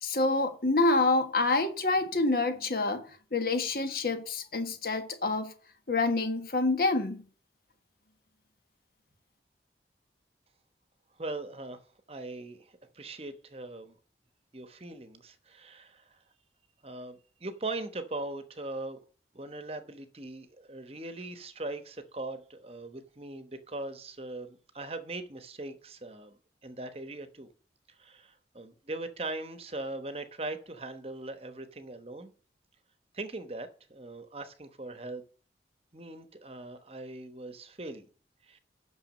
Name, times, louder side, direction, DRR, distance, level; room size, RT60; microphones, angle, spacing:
voice 1, 0.0-3.0 3.3-5.5 5.9-7.3, left 2 dB, 55° left, 1.5 m, -27 dB
voice 2, 11.2-11.8 12.1-14.0 14.5-16.2 16.8-19.0 19.3-27.5 28.0-32.3 33.1-35.2 35.9-38.1 38.4-38.6, right 2 dB, 35° right, 1.0 m, -40 dB
9.0 x 6.2 x 6.3 m
head